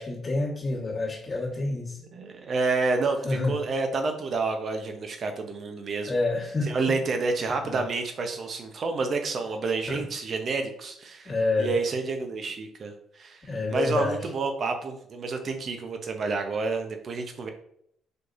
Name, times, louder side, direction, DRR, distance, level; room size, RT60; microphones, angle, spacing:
voice 1, 0.0-2.0 3.2-3.6 6.1-6.7 7.6-7.8 9.9-10.0 11.2-11.7 13.5-14.2, left 2 dB, 35° left, -6 dB, 1.4 m, -28 dB
voice 2, 2.1-6.2 6.6-11.3 11.6-13.4 13.7-17.5, right 3 dB, 50° right, 5 dB, 0.7 m, -29 dB
4.3 x 3.2 x 2.5 m, 0.69 s
supercardioid pair, 75°, 0 cm